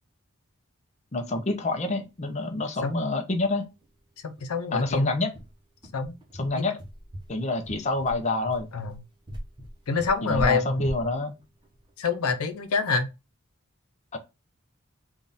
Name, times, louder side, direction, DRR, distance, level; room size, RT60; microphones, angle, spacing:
voice 1, 1.1-3.7 4.7-5.3 6.4-6.8 7.3-8.7 10.2-11.3 14.1-14.2, left 2 dB, 30° left, 0.6 m, -27 dB
sound 1, 2.5-2.6 2.9-3.0 3.3-3.5 3.8-3.9 4.4-12.8, equal, 20° right, 0.8 m, -39 dB
voice 2, 4.2-5.1 5.9-6.1 6.5-6.6 8.7-8.9 9.9-10.9 12.0-13.1, left 4 dB, 90° left, 0.6 m, -26 dB
3.6 x 2.4 x 3.9 m
head